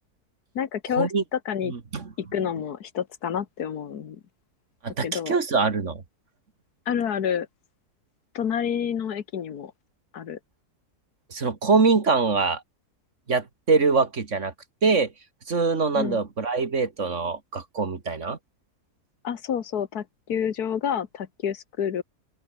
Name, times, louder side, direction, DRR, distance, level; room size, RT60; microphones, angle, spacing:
voice 1, 0.6-1.7 2.2-4.2 5.0-5.4 6.9-7.5 8.3-9.7 10.1-10.4 15.9-16.2 19.2-22.0, left 8 dB, 75° left, 1.8 m, -28 dB
voice 2, 1.7-2.1 4.8-6.0 11.3-12.6 13.3-14.5 14.8-15.1 15.5-18.4, right 4 dB, 50° right, 2.2 m, -23 dB
open air
omnidirectional pair, 1.7 m